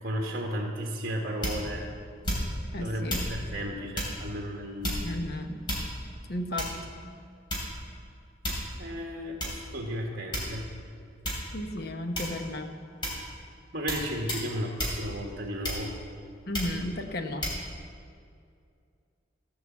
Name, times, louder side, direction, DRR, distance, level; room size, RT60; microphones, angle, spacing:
voice 1, 0.0-1.9 2.7-5.3 8.8-10.7 13.7-15.9, equal, 50° right, 0 dB, 1.4 m, -34 dB
sound 1, 1.4-1.8 2.2-2.7 3.1-3.3 3.9-4.2 4.8-5.2 5.7-6.1 6.6-6.9 7.5-7.9 8.4-8.8 9.4-9.6 10.3-10.8 11.2-11.5 12.1-12.5 13.0-13.3 13.9-14.0 14.3-14.5 14.8-15.0 15.6-16.0 16.5-16.8 17.4-17.6, equal, 25° left, 3.1 m, -31 dB
voice 2, 2.7-3.3 5.0-5.7 6.3-6.8 11.5-12.7 16.5-17.5, left 1 dB, 55° left, 6 dB, 0.9 m, -34 dB
16.0 x 5.8 x 7.2 m, 2.3 s
head